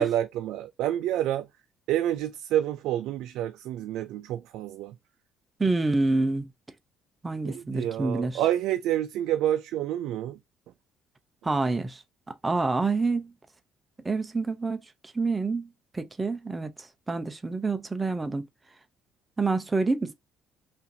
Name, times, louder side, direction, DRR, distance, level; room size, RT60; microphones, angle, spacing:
voice 1, 0.0-1.5 1.9-4.9 7.4-10.4, right 12 dB, 80° right, 0.3 m, -28 dB
voice 2, 5.6-6.5 7.2-8.4 11.4-12.0 12.4-13.3 14.0-14.8 15.1-15.7 15.9-16.7 17.1-18.5 19.4-20.1, right 3 dB, 10° right, 0.4 m, -27 dB
5.5 x 2.5 x 2.6 m
cardioid pair, 175°, 0 cm